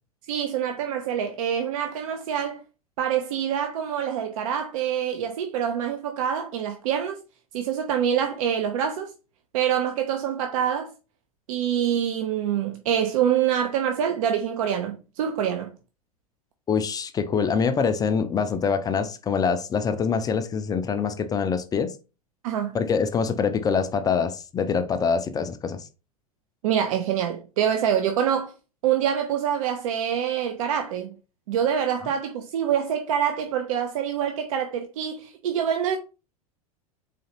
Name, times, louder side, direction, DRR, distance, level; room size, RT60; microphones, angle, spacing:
voice 1, 0.3-2.6 3.0-7.2 7.5-9.1 9.5-10.9 11.5-15.7 22.4-22.8 26.6-28.5 28.8-31.2 31.5-36.0, right 9 dB, 60° right, 0.6 m, -25 dB
voice 2, 16.7-21.9 22.7-25.9, left 6 dB, 20° left, 0.4 m, -25 dB
4.1 x 3.1 x 2.8 m
hypercardioid pair, 90°, 19 cm